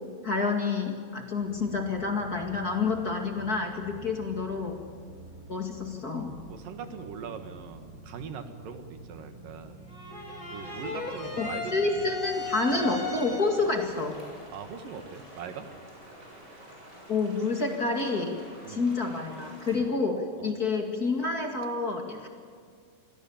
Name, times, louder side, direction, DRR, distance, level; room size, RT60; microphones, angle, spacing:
voice 1, 0.2-4.8 5.5-6.3 11.4-14.2 17.1-18.4 18.7-22.3, left 3 dB, 30° left, 3 dB, 2.2 m, -28 dB
sound 1, 1.4-17.1 17.5-17.6, right 2 dB, 85° left, 8.7 m, -50 dB
voice 2, 6.5-9.8 10.5-12.1 13.6-13.7 14.5-15.7 18.6-18.9 20.4-20.5, right 6 dB, 85° right, 7 dB, 3.4 m, -41 dB
sound 2, 9.9-13.7, left 3 dB, 15° left, 3.7 m, -37 dB
sound 3, 12.2-19.8, equal, 20° right, 7.2 m, -49 dB
28.0 x 21.5 x 7.2 m, 2.1 s
omnidirectional pair, 3.8 m